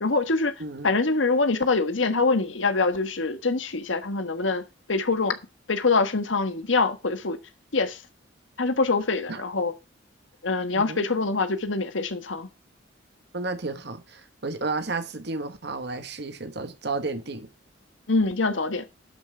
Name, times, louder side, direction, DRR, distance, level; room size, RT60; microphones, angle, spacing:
voice 1, 0.0-0.5 0.8-5.4 5.7-7.4 7.7-8.0 8.6-9.7 10.4-12.5 18.1-18.8, left 3 dB, 80° left, 1.3 m, -24 dB
voice 2, 10.7-11.1 13.3-17.5, right 3 dB, 60° right, 1.4 m, -32 dB
12.0 x 5.7 x 4.9 m
head